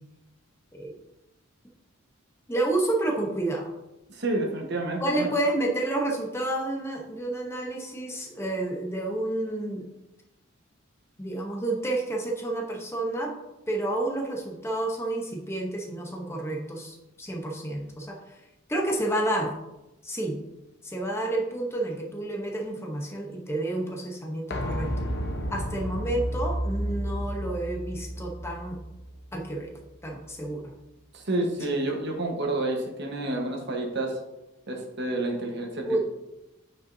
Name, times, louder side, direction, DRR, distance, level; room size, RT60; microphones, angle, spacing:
voice 1, 2.5-3.7 5.0-9.9 11.2-13.3 13.7-18.4 18.7-19.5 20.0-20.4 20.8-24.9 25.5-28.8 29.3-29.7 30.0-30.7 35.9-36.0, right 1 dB, 15° left, 0 dB, 0.8 m, -30 dB
voice 2, 4.1-5.3 31.1-34.2 34.7-36.0, right 2 dB, 55° right, 1 dB, 1.2 m, -29 dB
sound 1, 24.5-30.1 30.4-30.5, equal, 55° left, 1.0 m, -32 dB
8.8 x 5.3 x 2.7 m, 0.97 s
head